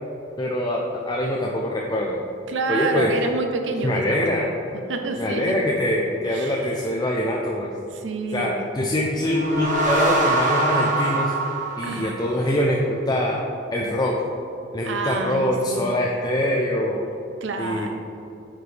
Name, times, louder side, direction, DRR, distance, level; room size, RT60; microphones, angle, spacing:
voice 1, 0.4-2.2 2.7-3.1 3.8-4.5 5.2-7.7 8.3-11.3 11.8-13.4 13.7-14.1 14.7-17.1 17.6-17.9, left 1 dB, 20° left, -2 dB, 0.5 m, -24 dB
voice 2, 2.5-4.3 4.9-5.6 6.3-6.6 7.9-8.5 11.8-12.2 14.8-15.8 17.4-17.9, right 3 dB, 85° right, 5 dB, 0.7 m, -28 dB
sound 1, 9.1-12.7, right 2 dB, 45° right, 1.2 m, -24 dB
9.1 x 4.8 x 3.3 m, 2.8 s
head